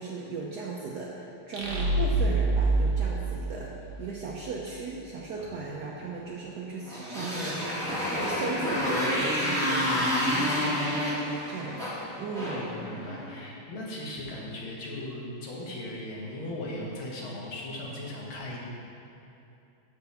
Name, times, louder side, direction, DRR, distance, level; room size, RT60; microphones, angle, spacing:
voice 1, 0.0-3.7 4.0-12.7, right 4 dB, 70° right, -3 dB, 1.0 m, -37 dB
sound 1, 1.5-4.2, right 2 dB, 40° right, 0.8 m, -26 dB
Motorcycle, 6.8-13.4, left 1 dB, ahead, 1.5 m, -29 dB
voice 2, 12.5-18.6, left 1 dB, 70° left, -3 dB, 2.1 m, -38 dB
7.2 x 4.6 x 6.7 m, 2.8 s
omnidirectional pair, 2.4 m